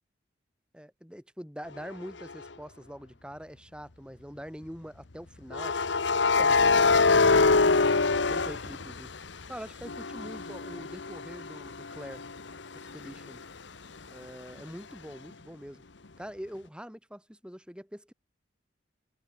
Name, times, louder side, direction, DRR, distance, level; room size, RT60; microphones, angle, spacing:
voice 1, 0.7-5.7 6.4-9.1 9.5-12.2 12.9-13.4 14.1-15.8 16.2-18.1, equal, 5° right, 3.6 m, -44 dB
sound 1, 2.2-2.4 5.5-9.4 9.8-13.4, left 4 dB, 70° left, 1.1 m, -25 dB
head